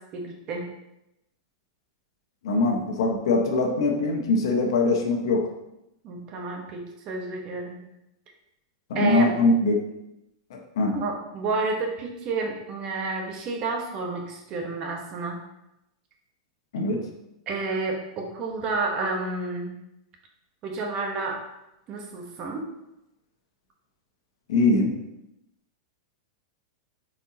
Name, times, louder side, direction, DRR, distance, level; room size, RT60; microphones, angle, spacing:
voice 1, 0.1-0.7 6.0-7.8 8.9-9.3 10.9-15.4 17.5-19.7 20.6-21.4 21.9-22.7, right 3 dB, 30° right, 1 dB, 1.0 m, -30 dB
voice 2, 2.4-5.5 8.9-9.8 10.5-11.0 16.7-17.0 24.5-25.0, left 2 dB, 70° left, 2 dB, 1.2 m, -22 dB
8.1 x 4.4 x 2.8 m, 0.87 s
supercardioid pair, 160°, 3 cm